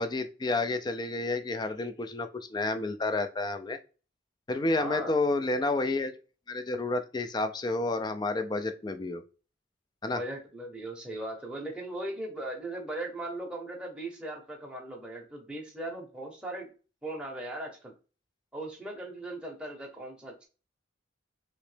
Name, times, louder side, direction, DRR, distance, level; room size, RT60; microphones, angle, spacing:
voice 1, 0.0-3.8 4.5-6.2 6.5-9.2 10.0-10.2, left 2 dB, 20° left, 9 dB, 0.3 m, -30 dB
voice 2, 4.8-5.2 10.1-16.7 17.0-17.9 18.5-20.5, right 1 dB, 5° right, -2 dB, 0.8 m, -38 dB
3.0 x 2.9 x 3.2 m, 0.35 s
head